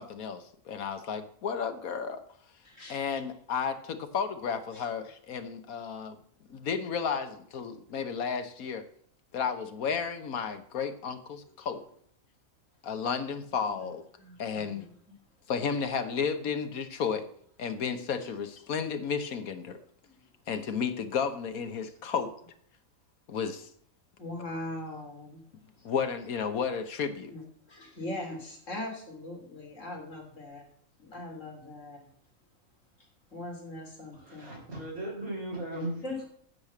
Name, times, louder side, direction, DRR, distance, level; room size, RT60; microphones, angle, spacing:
voice 1, 0.0-2.2 2.9-6.2 6.5-8.8 9.3-11.8 12.8-14.0 14.4-14.9 15.5-17.2 17.6-19.8 20.5-22.3 23.3-23.7 25.8-27.3, left 6 dB, 85° left, 9 dB, 1.6 m, -32 dB
voice 2, 2.6-3.1 4.7-4.9 13.8-13.9 14.2-15.2 19.6-19.7 24.2-25.4 25.8-25.9 27.3-30.6 31.0-32.1 33.0-34.5 36.0-36.3, left 1 dB, 60° left, 0 dB, 3.7 m, -41 dB
voice 3, 34.1-36.0, right 1 dB, 80° right, -6 dB, 4.3 m, -37 dB
9.5 x 6.6 x 7.1 m, 0.64 s
omnidirectional pair, 1.5 m